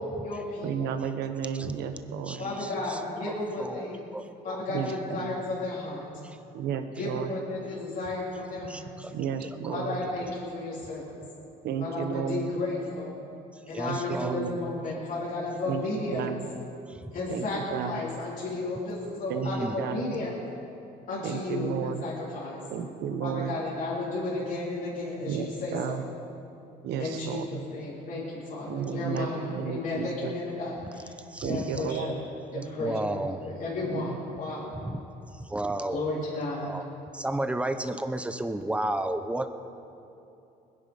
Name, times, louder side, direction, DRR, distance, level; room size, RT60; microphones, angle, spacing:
voice 1, 0.0-0.9 2.4-4.0 4.4-6.0 7.0-8.9 9.7-11.2 11.8-13.1 13.7-16.2 17.1-20.3 21.1-22.6 23.2-26.0 27.0-31.1 31.4-32.1 32.5-33.1 33.4-34.7 35.9-36.8, left 2 dB, 50° left, -7 dB, 3.5 m, -33 dB
voice 2, 0.6-2.5 4.7-5.3 6.5-7.3 9.1-10.0 11.6-12.5 13.9-14.6 15.7-15.8 16.1-16.5 17.3-18.0 19.3-20.2 21.2-22.0 22.7-23.6 25.2-26.1 26.8-27.7 28.7-30.3 31.4-32.2 32.5-33.3 33.9-34.2, right 8 dB, 80° right, 8 dB, 1.2 m, -33 dB
voice 3, 2.3-3.0 3.2-3.3 3.6-4.6 6.2-6.4 8.7-9.1 9.4-9.6 9.9-10.0 13.7-14.4 16.9-17.1 19.4-19.8 31.2-31.9 32.8-33.4 34.7-35.0 35.3-36.0 36.5-36.9 37.1-39.5, right 1 dB, 5° right, 9 dB, 0.8 m, -33 dB
21.0 x 10.5 x 5.4 m, 2.9 s
cardioid pair, 110°, 17 cm